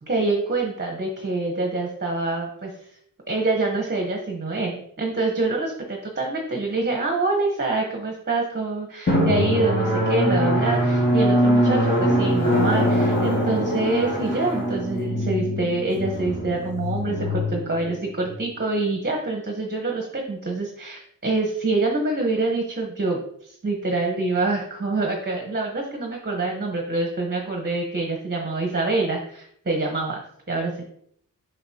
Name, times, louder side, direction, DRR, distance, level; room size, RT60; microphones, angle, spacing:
voice 1, 0.0-2.9 3.3-30.8, right 3 dB, 30° right, 0 dB, 1.1 m, -26 dB
Drum, 9.1-18.3, equal, 35° left, 1.9 m, -22 dB
6.7 x 5.7 x 2.9 m, 0.67 s
wide cardioid pair, 135°, 34 cm